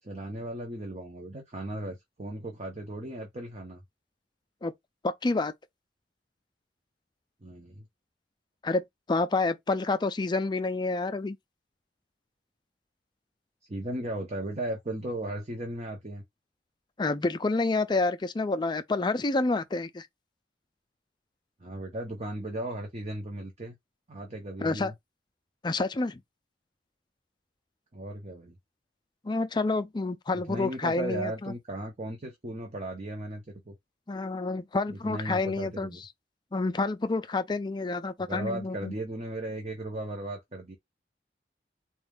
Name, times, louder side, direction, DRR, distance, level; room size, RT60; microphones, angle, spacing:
voice 1, 0.0-3.8 7.4-7.8 13.7-16.2 21.6-23.8 24.1-24.9 27.9-28.6 30.3-33.8 34.9-36.0 38.3-40.8, right 1 dB, 40° right, 0.8 m, -36 dB
voice 2, 5.0-5.5 8.6-11.4 17.0-20.1 24.6-24.9 25.6-26.2 29.2-31.5 34.1-35.9 36.5-38.9, left 3 dB, 25° left, 0.4 m, -28 dB
4.2 x 2.4 x 3.4 m
head